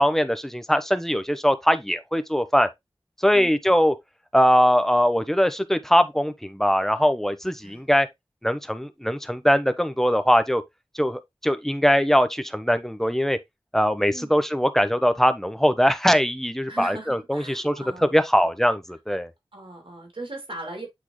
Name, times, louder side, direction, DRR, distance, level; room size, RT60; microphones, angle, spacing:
voice 1, 0.0-2.7 3.2-3.9 4.3-8.1 8.4-10.6 10.9-13.4 13.7-17.7 18.0-19.3, equal, 5° left, 0.8 m, -21 dB
voice 2, 14.1-14.4 16.7-18.4 19.5-20.9, right 2 dB, 65° right, 2.9 m, -39 dB
8.5 x 3.6 x 3.1 m
wide cardioid pair, 45°, 9 cm